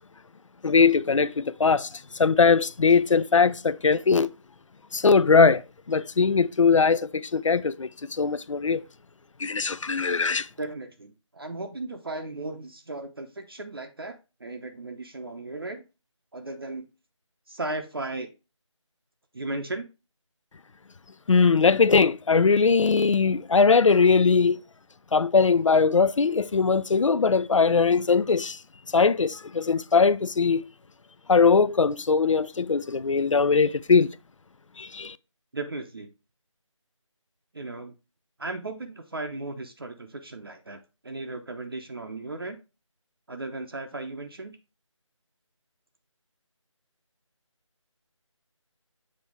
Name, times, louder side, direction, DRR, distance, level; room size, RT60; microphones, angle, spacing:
voice 1, 0.6-1.9 2.2-4.3 4.9-5.6 5.9-8.8 9.4-10.5 21.3-24.6 25.1-28.6 28.9-30.6 31.3-34.1 34.8-35.2, left 5 dB, 70° left, 0.5 m, -20 dB
voice 2, 10.6-15.8 16.3-16.9 17.5-18.3 19.3-19.9 35.5-36.1 37.5-37.9 38.4-42.6 43.3-44.6, right 2 dB, 45° right, 0.7 m, -36 dB
7.4 x 2.8 x 4.7 m
figure-of-eight pair, 170°, 17 cm